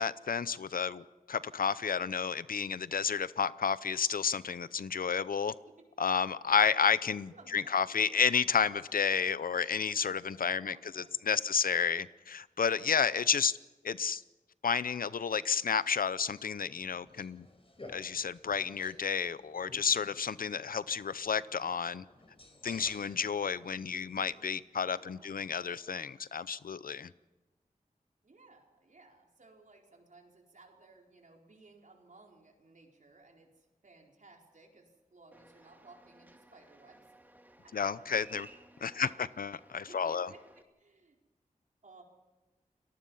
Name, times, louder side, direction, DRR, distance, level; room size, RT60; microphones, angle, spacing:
voice 1, 0.0-5.5 6.0-13.5 13.8-14.2 14.6-17.5 17.9-22.0 22.6-27.1 37.7-38.5 38.8-40.3, left 6 dB, 80° left, 17 dB, 0.7 m, -31 dB
voice 2, 7.3-8.0 10.4-11.5 24.8-25.5 28.2-37.0 37.6-38.3 38.9-39.3 39.9-41.2 41.8-42.0, right 3 dB, 60° right, 1 dB, 4.4 m, -59 dB
sound 1, 16.3-24.6, left 2 dB, 40° left, 5.0 m, -55 dB
sound 2, 35.3-40.6, right 1 dB, 10° right, 2.0 m, -58 dB
29.5 x 19.0 x 5.6 m, 1.1 s
wide cardioid pair, 60°, 15 cm